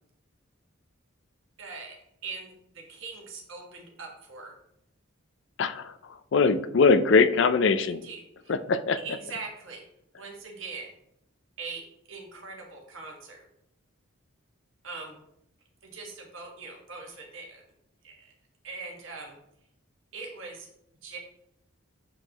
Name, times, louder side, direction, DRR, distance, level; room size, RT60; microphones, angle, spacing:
voice 1, 1.6-2.0 2.2-4.5 7.9-8.5 9.0-9.8 10.2-10.9 11.6-13.4 14.8-15.2 15.8-17.6 18.0-18.3 18.6-19.4 20.1-20.7 21.0-21.2, right 4 dB, 70° right, 0 dB, 1.4 m, -41 dB
voice 2, 5.6-5.9 6.3-8.0 8.5-9.0, left 4 dB, 60° left, 12 dB, 0.4 m, -21 dB
7.5 x 4.6 x 2.9 m, 0.80 s
head